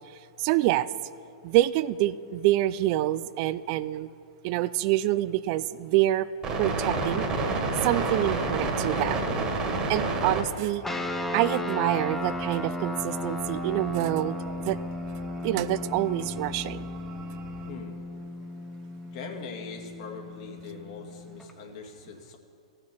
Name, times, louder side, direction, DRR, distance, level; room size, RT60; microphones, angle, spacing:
voice 1, 0.4-0.9 1.4-4.1 4.4-6.3 6.6-7.3 7.8-9.3 9.9-10.8 11.3-14.8 15.4-16.9, right 15 dB, 45° right, 16 dB, 0.4 m, -26 dB
sound 1, 6.4-17.7, right 3 dB, 25° right, 1.8 m, -32 dB
sound 2, 10.8-21.5, left 1 dB, 10° left, 0.8 m, -35 dB
voice 2, 19.1-22.4, left 5 dB, 55° left, 2 dB, 2.1 m, -41 dB
14.5 x 6.6 x 7.1 m, 2.5 s
hypercardioid pair, 115°, 3 cm